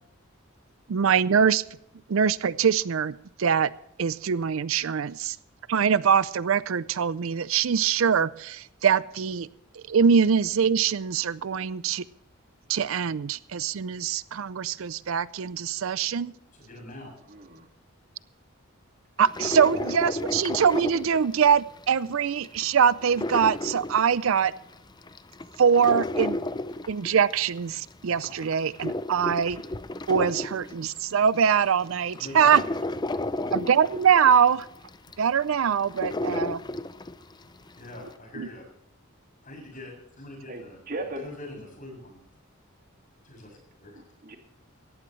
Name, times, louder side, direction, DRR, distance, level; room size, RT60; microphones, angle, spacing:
voice 1, 0.9-1.6 2.1-3.7 4.0-5.4 5.7-9.5 9.7-12.0 12.7-16.3 19.2-24.5 25.6-26.4 26.9-29.6 30.1-32.6 33.5-34.7 35.2-36.6 38.3-38.5, right 7 dB, 70° right, 18 dB, 0.5 m, -23 dB
voice 2, 16.5-17.1 28.1-28.3 32.2-32.6 37.8-38.7 39.4-42.2 43.2-44.0, left 1 dB, 40° left, 1 dB, 6.8 m, -43 dB
voice 3, 17.3-17.7 19.8-19.9 33.3-33.5 40.5-41.3 43.9-44.4, right 2 dB, 45° right, 3 dB, 2.3 m, -38 dB
sound 1, 19.2-21.8 22.2-24.6 25.0-27.6 28.0-31.1 31.7-31.8 32.1-37.3 37.7-37.8, left 2 dB, 20° left, 0.5 m, -32 dB
18.0 x 14.5 x 3.2 m, 0.76 s
head